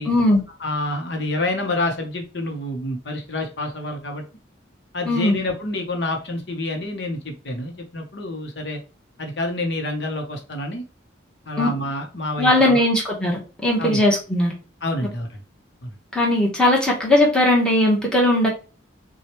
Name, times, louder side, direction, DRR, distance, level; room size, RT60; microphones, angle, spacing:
voice 1, 0.1-0.4 5.1-5.3 11.6-11.7 12.4-14.5 16.1-18.5, left 1 dB, 5° left, -3 dB, 1.2 m, -18 dB
voice 2, 0.6-4.2 4.9-8.8 9.2-10.8 11.4-12.9 13.8-14.0 14.8-15.4 15.8-16.0, left 1 dB, 60° left, 3 dB, 0.9 m, -28 dB
6.2 x 2.3 x 3.1 m, 0.34 s
head